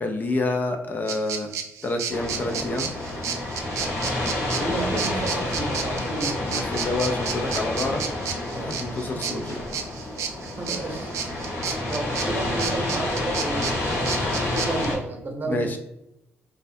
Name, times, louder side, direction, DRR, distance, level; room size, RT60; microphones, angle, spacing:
voice 1, 0.0-1.5 1.8-2.9 6.4-8.0 8.6-9.6 11.6-11.8 15.4-15.8, left 2 dB, 35° left, 5 dB, 0.3 m, -28 dB
sound 1, 1.1-14.9, right 7 dB, 80° right, 0.3 m, -32 dB
sound 2, 2.1-15.0, left 1 dB, 60° left, 1.0 m, -29 dB
voice 2, 4.5-6.5 8.5-8.7 10.6-11.6 11.9-14.1 14.5-15.8, right 2 dB, 40° right, 1 dB, 0.6 m, -32 dB
2.2 x 2.1 x 2.6 m, 0.84 s
cardioid pair, 95°, 5 cm